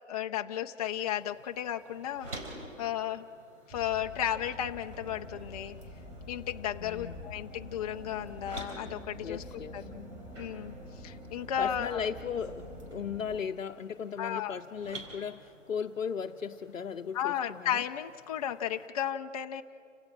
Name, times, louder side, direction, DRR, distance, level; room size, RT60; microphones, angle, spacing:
voice 1, 0.1-2.3 2.8-3.3 3.7-5.8 6.3-9.4 9.7-10.1 10.4-10.7 11.0-12.0 14.2-14.6 17.1-19.6, left 10 dB, 30° left, 5 dB, 0.6 m, -34 dB
sound 1, 0.8-18.9, right 1 dB, 70° right, 5.0 m, -51 dB
sound 2, 3.7-13.4, left 1 dB, 15° right, 4.2 m, -46 dB
voice 2, 6.8-7.1 9.2-9.9 11.6-17.8, left 7 dB, 90° left, 4 dB, 0.8 m, -37 dB
30.0 x 17.5 x 6.1 m, 2.4 s
hypercardioid pair, 140°, 38 cm